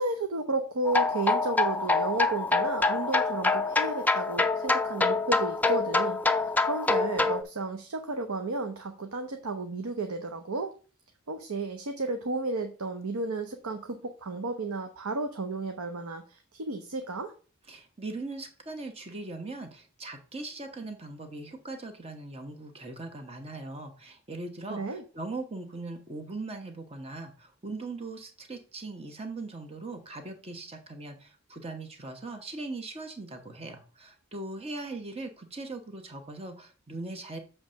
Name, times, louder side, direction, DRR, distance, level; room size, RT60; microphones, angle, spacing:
voice 1, 0.0-10.7 11.3-17.3 24.7-25.0, right 2 dB, 80° right, 6 dB, 0.8 m, -33 dB
sound 1, 0.8-7.4, left 3 dB, 5° left, 0.4 m, -26 dB
voice 2, 17.7-37.4, right 2 dB, 30° right, 4 dB, 1.1 m, -40 dB
7.3 x 3.3 x 6.3 m, 0.37 s
head